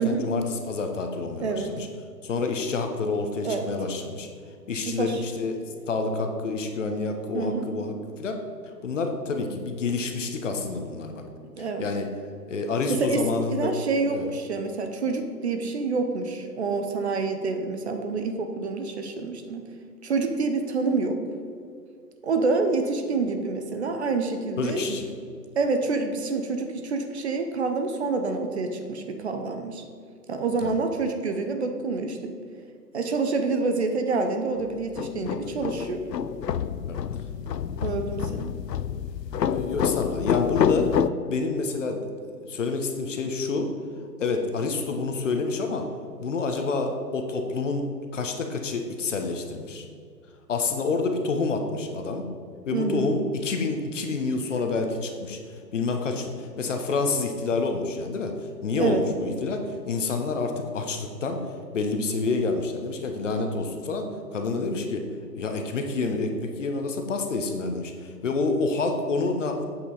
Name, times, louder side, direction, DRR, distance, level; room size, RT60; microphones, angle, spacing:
voice 1, 0.0-1.9 2.2-4.3 4.7-5.6 5.9-8.4 8.8-11.2 11.6-12.1 12.5-13.7 14.1-14.3 24.6-25.1 30.6-30.8 36.9-37.0 37.5-37.6 39.5-40.9 41.3-42.0 42.4-43.7 44.2-45.9 46.2-47.9 48.1-49.8 50.5-52.3 52.7-58.3 58.6-61.4 61.7-65.1 65.3-69.7, left 3 dB, 50° left, 4 dB, 1.2 m, -28 dB
voice 2, 1.4-1.8 3.4-3.6 4.9-5.2 7.3-7.7 11.5-11.9 12.9-13.2 13.5-19.7 20.0-21.2 22.2-25.0 25.5-29.8 30.3-32.4 32.9-36.0 37.8-38.6 52.7-53.1 58.8-59.0, right 4 dB, 40° right, 6 dB, 0.8 m, -27 dB
sound 1, 34.6-41.1, left 8 dB, 75° left, 0.6 m, -27 dB
8.2 x 7.5 x 4.1 m, 2.2 s
figure-of-eight pair, 135°, 49 cm